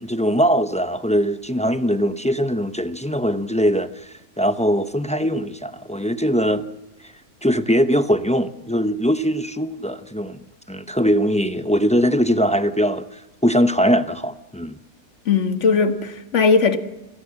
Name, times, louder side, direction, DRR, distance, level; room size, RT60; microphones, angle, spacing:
voice 1, 0.0-6.7 7.4-10.4 10.7-14.8, equal, 10° left, 0.4 m, -21 dB
voice 2, 15.3-16.8, left 5 dB, 50° left, 1.8 m, -18 dB
27.0 x 20.0 x 7.6 m
omnidirectional pair, 1.7 m